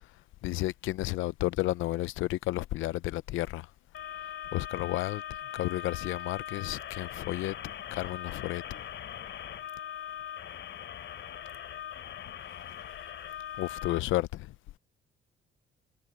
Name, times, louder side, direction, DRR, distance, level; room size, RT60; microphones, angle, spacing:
voice 1, 0.4-3.7 4.5-5.2 5.5-7.6 7.9-8.8 13.6-14.5, left 17 dB, 90° left, 0.6 m, -32 dB
sound 1, 3.9-14.0, left 10 dB, 70° left, 3.0 m, -41 dB
cardioid pair, 90°, 20 cm